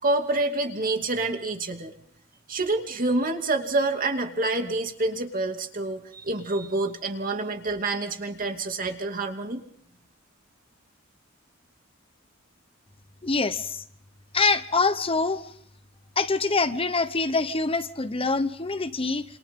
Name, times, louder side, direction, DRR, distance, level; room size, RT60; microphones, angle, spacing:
voice 1, 0.0-1.9 2.5-9.6, right 2 dB, 45° right, 4 dB, 2.7 m, -27 dB
voice 2, 13.2-13.8 14.3-15.4 16.2-19.2, left 3 dB, 30° left, 11 dB, 1.0 m, -25 dB
28.0 x 28.0 x 3.8 m, 0.67 s
head